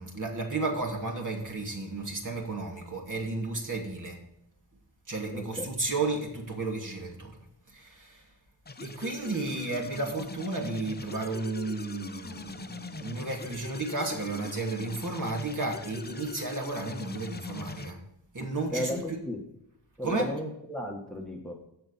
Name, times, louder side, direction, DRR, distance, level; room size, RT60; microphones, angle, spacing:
voice 1, 0.0-4.2 5.1-7.4 7.7-8.2 8.8-18.0 18.3-19.2 20.0-20.3, right 3 dB, 45° right, 0 dB, 2.8 m, -33 dB
voice 2, 5.3-5.7 18.7-19.4 20.0-21.7, equal, ahead, 1 dB, 1.5 m, -34 dB
sound 1, 8.7-17.9, left 4 dB, 25° left, 0.7 m, -42 dB
16.0 x 5.4 x 4.2 m, 0.78 s
wide cardioid pair, 115°, 42 cm